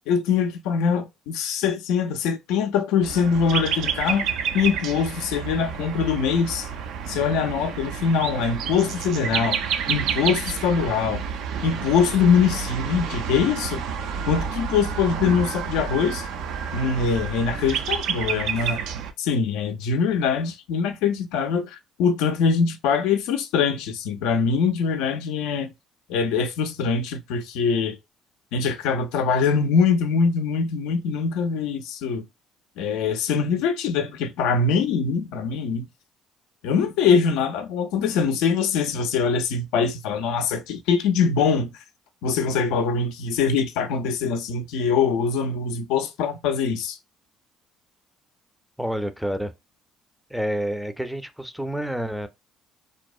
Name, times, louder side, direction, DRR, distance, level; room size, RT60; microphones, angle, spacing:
voice 1, 0.1-6.7 7.1-9.6 9.9-11.2 11.6-13.8 14.3-16.3 16.7-18.8 19.2-25.7 26.1-28.0 28.5-32.2 32.8-35.9 36.6-41.8 42.2-47.0, left 6 dB, 75° left, 0.3 m, -23 dB
sound 1, 3.0-19.1, right 7 dB, 70° right, 0.3 m, -29 dB
voice 2, 48.8-49.5 50.3-52.3, equal, ahead, 0.4 m, -28 dB
2.6 x 2.0 x 2.3 m
hypercardioid pair, 60°, 0 cm